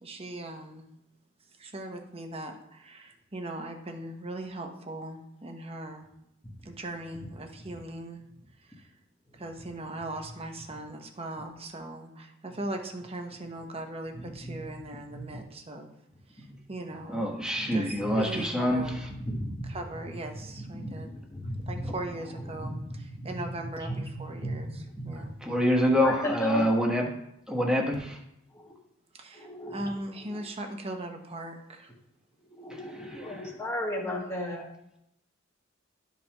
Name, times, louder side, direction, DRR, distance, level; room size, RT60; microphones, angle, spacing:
voice 1, 0.0-0.9 1.6-6.1 6.6-8.2 8.8-8.9 9.3-15.9 16.3-17.3 17.7-19.0 19.7-21.1 21.7-25.4 26.6-26.7 29.1-31.9 34.0-34.6, right 2 dB, 30° right, 4 dB, 1.0 m, -39 dB
voice 2, 14.1-14.6 15.1-15.2 16.4-16.6 16.9-17.0 17.5-18.3 18.6-26.9 28.5-28.7 29.3-30.4 32.5-34.7, equal, 15° left, -3 dB, 1.4 m, -36 dB
voice 3, 17.1-18.8 25.4-27.1 27.5-28.2 33.0-33.2, equal, 5° right, -1 dB, 1.3 m, -26 dB
12.0 x 5.4 x 3.0 m, 0.80 s
head